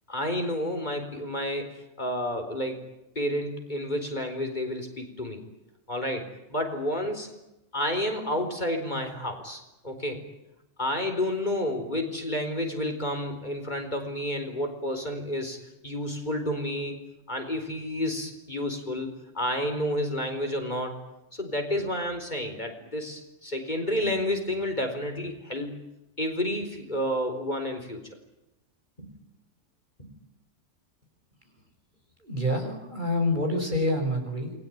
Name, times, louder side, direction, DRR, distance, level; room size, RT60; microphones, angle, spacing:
voice 1, 0.1-2.8 3.2-5.4 5.9-6.2 6.5-7.3 7.7-10.3 10.8-15.6 15.8-17.0 17.3-20.9 21.3-25.8 26.2-28.2 29.0-29.1, left 1 dB, 35° left, 4 dB, 4.4 m, -30 dB
voice 2, 32.2-34.5, left 1 dB, 35° right, 3 dB, 6.6 m, -27 dB
28.0 x 21.5 x 9.4 m, 0.91 s
omnidirectional pair, 1.3 m